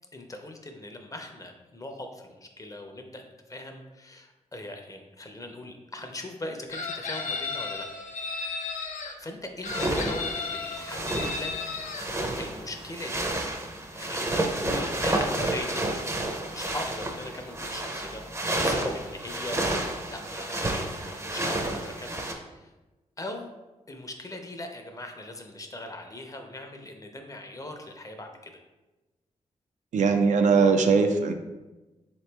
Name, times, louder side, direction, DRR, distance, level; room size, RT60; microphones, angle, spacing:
voice 1, 0.1-7.9 8.9-11.5 11.8-13.3 14.0-15.9 16.3-18.2 18.6-22.2 22.5-22.7 23.2-23.5 23.9-28.6, left 1 dB, 25° left, 4 dB, 0.6 m, -40 dB
Chicken rooster, 6.7-9.1 9.6-12.1, left 4 dB, 80° left, 0.5 m, -34 dB
sound 1, 9.7-22.3, right 1 dB, 20° right, 0.6 m, -30 dB
voice 2, 29.9-31.3, right 5 dB, 70° right, 6 dB, 0.4 m, -20 dB
3.8 x 2.9 x 3.3 m, 1.1 s
cardioid pair, 65°, 13 cm